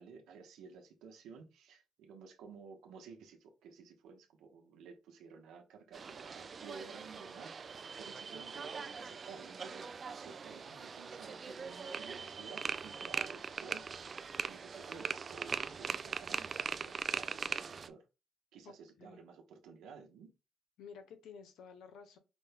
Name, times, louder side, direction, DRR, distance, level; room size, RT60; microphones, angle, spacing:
voice 1, 0.0-18.1 18.5-20.3, right 5 dB, 85° right, 1.0 m, -54 dB
sound 1, 5.9-17.9, right 5 dB, 40° right, 0.3 m, -41 dB
voice 2, 18.6-19.2 20.8-22.2, left 6 dB, 80° left, 0.8 m, -53 dB
5.1 x 2.2 x 3.4 m
cardioid pair, 90°, 0 cm